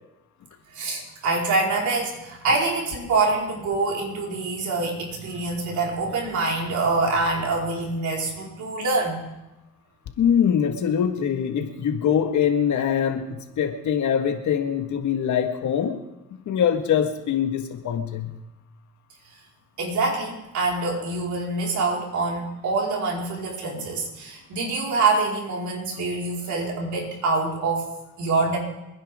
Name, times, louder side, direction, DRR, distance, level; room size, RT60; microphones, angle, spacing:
voice 1, 0.7-9.2 19.8-27.9 28.2-28.6, right 3 dB, 70° right, -2 dB, 4.9 m, -25 dB
voice 2, 10.2-16.0 16.5-18.4, left 8 dB, 75° left, 5 dB, 1.8 m, -23 dB
27.5 x 10.0 x 3.7 m, 0.96 s
cardioid pair, 90°, 30 cm